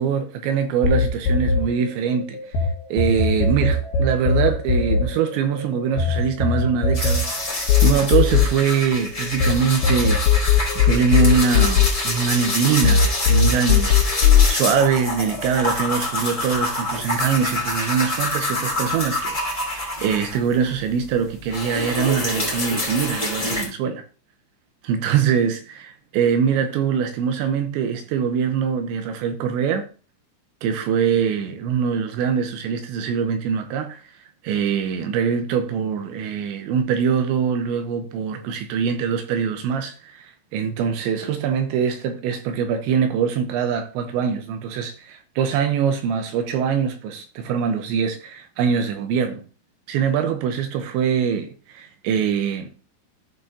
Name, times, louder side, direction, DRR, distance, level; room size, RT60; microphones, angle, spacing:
voice 1, 0.0-2.4 2.9-14.0 14.5-24.0 24.8-29.9 30.6-34.0 34.4-49.4 49.9-52.7, right 7 dB, 80° right, 2.8 m, -23 dB
sound 1, 0.8-2.7 3.0-9.5 9.8-12.5 12.8-14.5, left 7 dB, 65° left, 2.8 m, -18 dB
sound 2, 6.9-20.7 21.0-23.6, left 1 dB, 15° left, 1.3 m, -27 dB
13.5 x 6.0 x 2.7 m
omnidirectional pair, 5.9 m